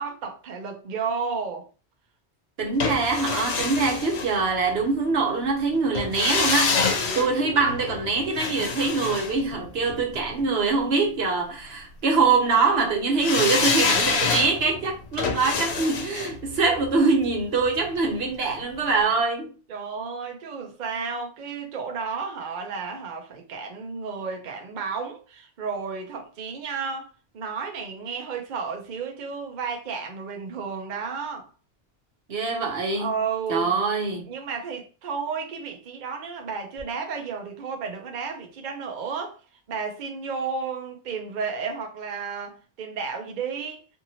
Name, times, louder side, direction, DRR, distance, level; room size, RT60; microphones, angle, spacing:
voice 1, 0.0-1.7 6.9-7.6 19.7-31.5 32.9-33.8 34.3-39.4 39.7-44.0, right 5 dB, 55° right, 0.6 m, -32 dB
voice 2, 2.6-6.8 7.2-19.5 32.3-33.1 33.5-34.3, right 4 dB, 70° right, 1.0 m, -24 dB
sound 1, 2.8-4.9 6.0-10.2 13.2-18.2 18.5-18.6, left 5 dB, 75° left, 0.9 m, -27 dB
2.8 x 2.6 x 2.7 m
omnidirectional pair, 1.1 m